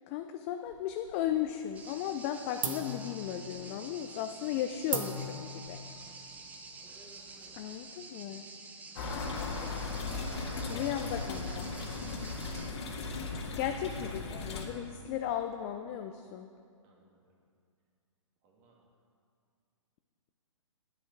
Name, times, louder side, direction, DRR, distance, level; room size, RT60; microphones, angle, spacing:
voice 1, 0.1-5.8 7.5-8.4 10.7-11.7 13.6-16.5, left 11 dB, 25° left, 7 dB, 0.3 m, -35 dB
sound 1, 0.7-1.5 1.8-2.3 2.6-7.8, right 3 dB, 75° right, 1.2 m, -40 dB
sound 2, 1.7-12.7, right 3 dB, 10° right, 0.7 m, -49 dB
sound 3, 9.0-14.6, left 3 dB, 50° left, 1.7 m, -37 dB
voice 2, 9.1-10.4 16.8-17.1 18.4-18.8, right 3 dB, 35° right, -2 dB, 2.4 m, -58 dB
11.0 x 9.8 x 4.6 m, 2.3 s
hypercardioid pair, 135°, 17 cm